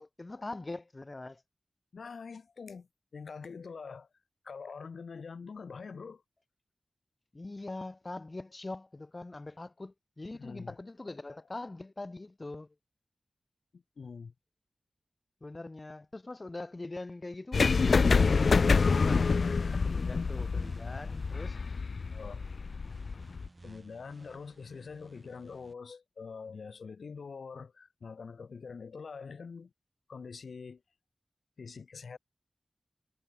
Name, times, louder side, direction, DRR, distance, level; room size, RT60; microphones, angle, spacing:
voice 1, 0.0-1.4 7.3-12.7 15.4-17.8 18.1-21.6, left 2 dB, 30° left, 0.8 m, -43 dB
voice 2, 1.9-4.1 4.4-6.2 10.3-10.8 13.7-14.3 22.1-22.5 23.6-29.7 30.1-30.8 31.6-32.2, left 5 dB, 85° left, 2.5 m, -45 dB
sound 1, 17.5-23.5, left 4 dB, 70° left, 0.3 m, -27 dB
sound 2, 19.7-25.7, right 2 dB, 30° right, 5.5 m, -57 dB
wide cardioid pair, 110°, 0 cm